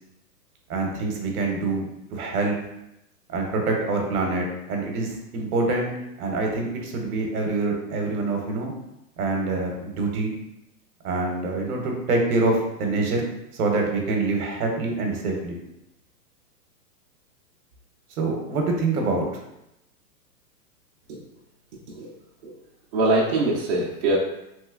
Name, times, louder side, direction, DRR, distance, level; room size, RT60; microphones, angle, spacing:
voice 1, 0.7-2.5 3.3-5.9 6.2-8.7 9.2-10.3 11.0-13.3 13.5-15.6 18.2-19.3, right 3 dB, 60° right, 1 dB, 0.9 m, -25 dB
voice 2, 22.9-24.2, right 2 dB, 40° right, -4 dB, 0.5 m, -23 dB
3.1 x 2.9 x 2.4 m, 0.87 s
hypercardioid pair, 140°, 49 cm